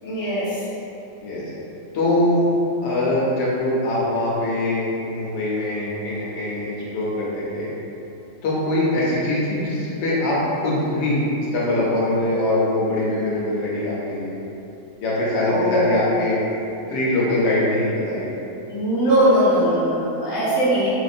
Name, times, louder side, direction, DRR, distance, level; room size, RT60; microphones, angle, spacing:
voice 1, 0.0-0.5 15.4-16.0 18.7-20.9, right 1 dB, 15° left, -11 dB, 0.7 m, -20 dB
voice 2, 1.9-2.5 2.8-6.7 6.9-7.7 8.4-14.4 15.0-16.4 16.9-18.3, left 1 dB, 80° left, -7 dB, 1.4 m, -22 dB
4.0 x 2.5 x 2.6 m, 2.8 s
omnidirectional pair, 2.0 m